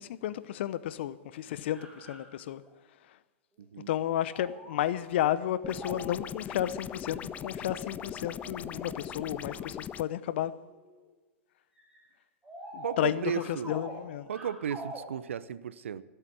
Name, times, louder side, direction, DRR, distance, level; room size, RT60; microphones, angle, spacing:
voice 1, 0.0-2.6 3.9-10.5 12.7-14.3, left 12 dB, 60° left, 0.8 m, -32 dB
sound 1, 1.5-2.7 4.2-4.8 5.2-5.3 5.6-6.3 6.9-9.1 9.5-9.7 10.6-11.1 11.8-12.0 12.4-15.3, right 1 dB, 10° right, 4.6 m, -46 dB
voice 2, 3.6-3.9 12.8-13.7 14.3-16.0, right 8 dB, 75° right, 0.7 m, -35 dB
sound 2, 5.6-10.0, left 8 dB, 20° left, 0.4 m, -40 dB
15.0 x 8.2 x 8.9 m
hypercardioid pair, 105°, 7 cm